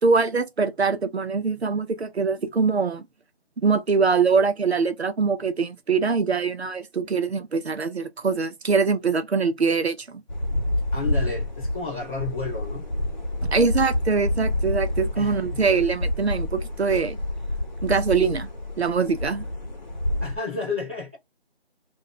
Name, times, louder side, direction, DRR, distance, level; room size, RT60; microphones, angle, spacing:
voice 1, 0.0-3.1 3.6-10.2 13.5-17.2 17.8-18.5 18.8-19.4, right 5 dB, 75° right, 0.8 m, -23 dB
sound 1, 10.3-20.4, left 1 dB, 45° left, 0.8 m, -28 dB
voice 2, 10.9-12.8 15.1-15.6 20.2-21.2, left 4 dB, 10° right, 1.0 m, -32 dB
2.4 x 2.2 x 3.9 m
figure-of-eight pair, 170°, 32 cm